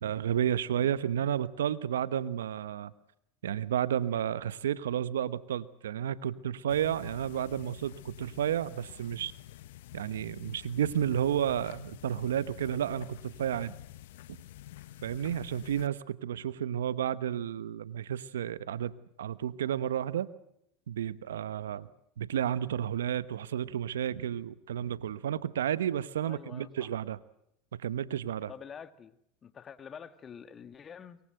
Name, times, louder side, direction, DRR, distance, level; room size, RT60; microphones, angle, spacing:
voice 1, 0.0-2.9 3.4-9.3 9.9-13.7 15.0-18.9 19.2-20.3 20.9-21.9 22.2-27.2 27.8-28.5, right 10 dB, 85° right, 17 dB, 1.0 m, -31 dB
sound 1, 6.7-15.9, left 14 dB, 75° left, 0.9 m, -48 dB
voice 2, 26.2-26.9 28.5-31.2, left 7 dB, 30° left, 12 dB, 1.7 m, -47 dB
23.0 x 22.5 x 7.8 m, 0.76 s
hypercardioid pair, 95°, 0 cm